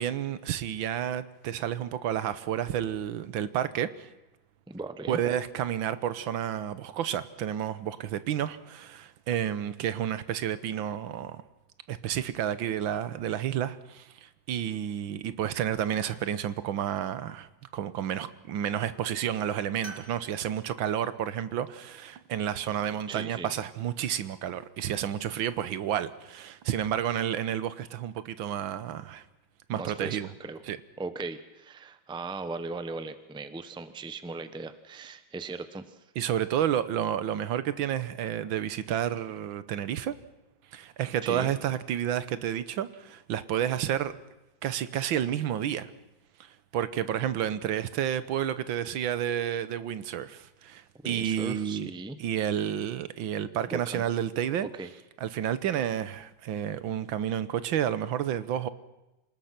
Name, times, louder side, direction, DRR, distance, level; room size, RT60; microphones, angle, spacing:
voice 1, 0.0-4.1 5.1-11.4 11.9-29.2 29.7-30.3 30.7-30.8 36.1-40.1 40.7-44.1 44.6-45.9 46.4-51.9 52.2-54.7 55.2-58.7, right 10 dB, 85° right, 1.7 m, -30 dB
voice 2, 4.7-5.2 23.1-23.5 29.8-30.6 31.0-36.0 41.2-41.5 51.0-52.2 53.7-54.0 54.8-54.9, right 3 dB, 5° right, 0.6 m, -38 dB
sound 1, 12.1-12.9 13.2-13.9 14.7-15.1 15.4-16.3 17.7-18.3 18.7-18.9 19.8-20.2, right 3 dB, 25° right, 2.8 m, -50 dB
27.5 x 19.5 x 5.9 m
omnidirectional pair, 2.1 m